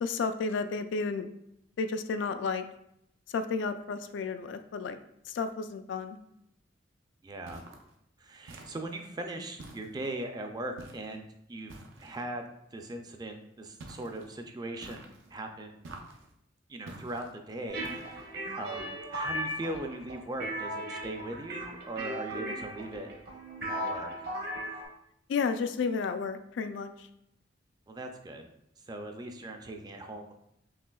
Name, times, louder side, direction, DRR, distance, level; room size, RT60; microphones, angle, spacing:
voice 1, 0.0-1.3 1.8-2.6 3.3-5.0 5.3-6.2 25.3-27.1, left 5 dB, 70° left, 9 dB, 0.3 m, -32 dB
voice 2, 7.2-7.6 8.2-11.2 11.5-15.8 16.7-23.1 23.7-24.1 27.9-28.5 28.9-30.3, right 1 dB, 20° right, 4 dB, 0.4 m, -40 dB
sound 1, 7.5-7.9 8.5-9.0 9.6-10.2 10.8-11.2 11.7-12.3 13.8-14.3 14.8-15.3 15.8-16.3 16.9-17.3 17.8-18.3, right 2 dB, 90° right, 0.6 m, -48 dB
sound 2, 17.7-24.8, right 1 dB, 55° right, 0.9 m, -37 dB
5.6 x 2.8 x 2.3 m, 0.78 s
head